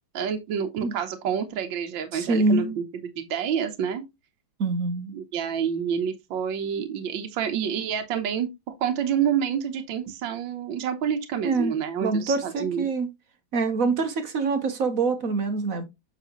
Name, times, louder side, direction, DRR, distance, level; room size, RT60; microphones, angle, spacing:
voice 1, 0.1-2.8 3.2-4.0 5.1-8.5 8.8-12.9, right 8 dB, 75° right, 1.7 m, -28 dB
voice 2, 2.1-2.7 4.6-5.1 11.4-13.1 13.5-15.8, right 3 dB, 50° right, 1.2 m, -25 dB
7.6 x 5.9 x 2.9 m
omnidirectional pair, 2.2 m